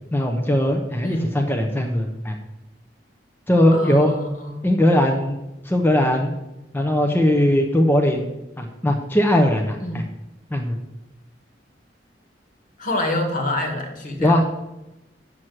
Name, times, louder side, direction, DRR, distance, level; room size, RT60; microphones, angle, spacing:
voice 1, 0.1-2.4 3.5-4.1 4.6-5.4 5.6-6.3 6.7-8.3 8.6-10.0 10.5-10.8 14.2-14.4, left 1 dB, 10° left, 2 dB, 0.8 m, -19 dB
voice 2, 3.7-4.6 9.8-10.0 12.8-14.4, left 1 dB, 50° left, 3 dB, 1.8 m, -26 dB
7.5 x 6.2 x 7.9 m, 0.95 s
head